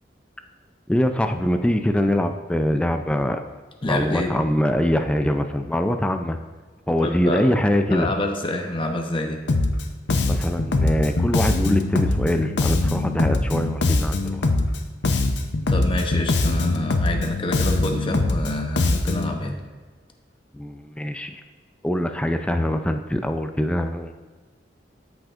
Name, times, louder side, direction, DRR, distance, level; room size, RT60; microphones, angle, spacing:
voice 1, 0.9-3.4 3.8-6.4 6.9-8.1 10.2-14.4 20.5-21.4 21.8-24.1, left 1 dB, 5° left, 6 dB, 0.4 m, -23 dB
voice 2, 3.8-4.3 7.0-7.4 7.9-9.4 15.7-19.6, left 1 dB, 30° left, 3 dB, 0.7 m, -27 dB
Bass guitar, 9.5-9.8 10.1-14.8 15.0-19.4, left 2 dB, 70° left, 0.6 m, -22 dB
13.5 x 6.2 x 2.5 m, 1.4 s
head